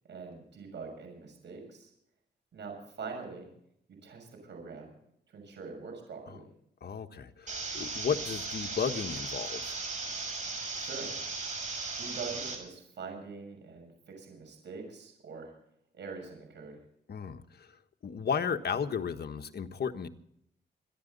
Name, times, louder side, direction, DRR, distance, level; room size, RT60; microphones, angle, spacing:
voice 1, 0.1-1.9 2.5-3.5 4.0-4.9 5.3-6.5 10.7-11.1 12.0-15.5 15.9-16.8, right 4 dB, 70° right, 6.5 m, -43 dB
voice 2, 6.8-9.8 17.1-17.7 18.0-20.1, left 6 dB, 60° left, 1.4 m, -34 dB
sound 1, 7.5-12.5, right 3 dB, 40° right, 6.9 m, -37 dB
26.0 x 11.0 x 4.1 m
cardioid pair, 90°, 19 cm